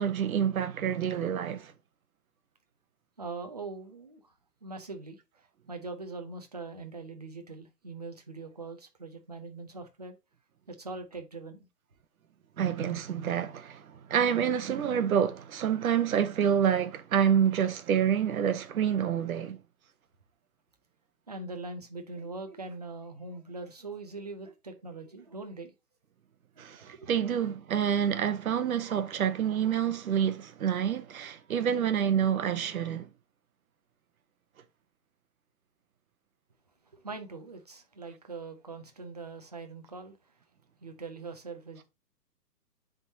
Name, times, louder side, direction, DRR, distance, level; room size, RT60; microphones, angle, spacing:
voice 1, 0.0-1.7 12.6-19.6 26.6-33.1, right 8 dB, 60° right, 0.9 m, -28 dB
voice 2, 3.2-4.3 4.6-5.2 5.7-10.2 10.7-11.7 21.3-25.7 26.6-27.1 36.9-40.3 40.8-41.9, right 3 dB, 25° right, 0.5 m, -42 dB
9.8 x 3.7 x 2.7 m
hypercardioid pair, 165°, 48 cm